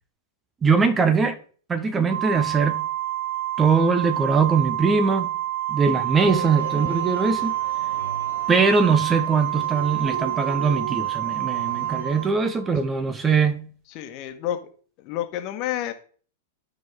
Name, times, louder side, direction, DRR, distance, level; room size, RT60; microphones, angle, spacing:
voice 1, 0.6-1.4 1.7-2.8 3.6-5.3 5.7-7.5 8.5-13.7, right 5 dB, 20° right, 0.9 m, -21 dB
Organ, 2.1-12.8, right 14 dB, 60° right, 5.4 m, -28 dB
sound 1, 6.1-12.3, right 4 dB, 75° right, 1.7 m, -38 dB
voice 2, 13.9-14.6 15.0-15.9, left 12 dB, 45° left, 1.5 m, -29 dB
13.0 x 5.3 x 3.6 m
hypercardioid pair, 100°, 0 cm